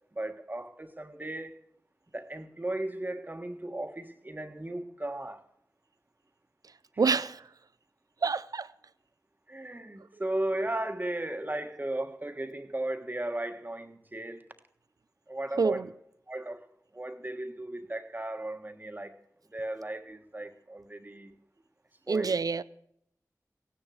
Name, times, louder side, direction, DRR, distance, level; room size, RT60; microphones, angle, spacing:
voice 1, 0.1-1.5 2.1-5.4 9.5-14.4 15.3-15.8 16.3-16.7 16.9-19.2 19.5-21.4 22.1-22.4, right 1 dB, 30° right, 1.5 m, -36 dB
voice 2, 7.0-7.4 8.2-8.7 15.6-15.9 22.1-22.6, right 4 dB, 75° right, 0.5 m, -27 dB
16.5 x 10.0 x 6.4 m
wide cardioid pair, 50°, 6 cm